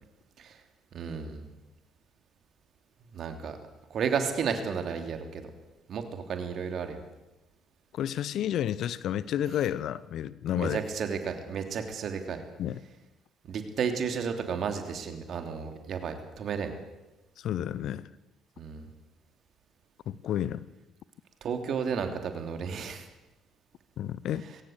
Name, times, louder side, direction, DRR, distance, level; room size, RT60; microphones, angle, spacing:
voice 1, 0.9-1.4 3.1-3.6 3.9-5.4 5.9-7.0 10.5-12.4 13.5-16.7 18.6-18.9 21.4-23.1, right 6 dB, 55° right, 6 dB, 3.1 m, -32 dB
voice 2, 7.9-10.8 12.6-12.8 17.4-18.1 20.1-20.6 24.0-24.5, left 11 dB, 60° left, 18 dB, 0.8 m, -31 dB
21.0 x 17.5 x 8.0 m, 1.0 s
hypercardioid pair, 50°, 0 cm